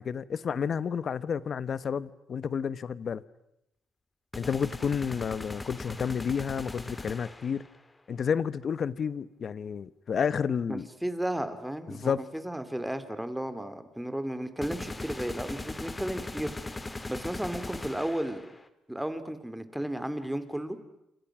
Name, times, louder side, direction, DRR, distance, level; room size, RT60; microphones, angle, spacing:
voice 1, 0.0-3.2 4.4-7.6 8.1-10.9 12.0-12.2, left 7 dB, 50° left, 1.0 m, -30 dB
sound 1, 4.3-7.7 14.6-18.7, left 2 dB, 20° left, 1.9 m, -39 dB
voice 2, 10.7-18.5 18.9-20.8, right 1 dB, 5° right, 2.9 m, -34 dB
30.0 x 27.5 x 6.2 m
cardioid pair, 90°, 0 cm